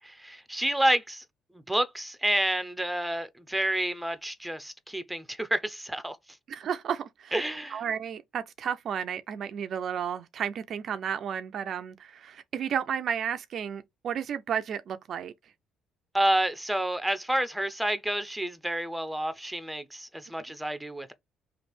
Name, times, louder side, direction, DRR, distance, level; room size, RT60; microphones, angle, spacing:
voice 1, 0.2-1.2 1.7-6.2 7.3-7.8 16.1-21.1, right 1 dB, 5° right, 0.7 m, -29 dB
voice 2, 6.5-7.3 7.7-15.3, right 8 dB, 60° right, 0.4 m, -32 dB
3.2 x 2.5 x 4.2 m
supercardioid pair, 60°, 0 cm